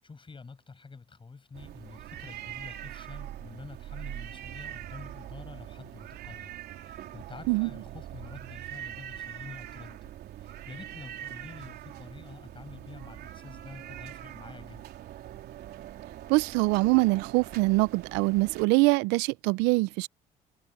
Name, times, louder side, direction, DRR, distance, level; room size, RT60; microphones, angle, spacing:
voice 1, 0.0-14.9, left 4 dB, 30° left, 7.8 m, -47 dB
sound 1, 1.5-18.6, right 12 dB, 70° right, 3.7 m, -43 dB
voice 2, 16.3-20.1, right 24 dB, 85° right, 0.6 m, -24 dB
supercardioid pair, 75°, 17 cm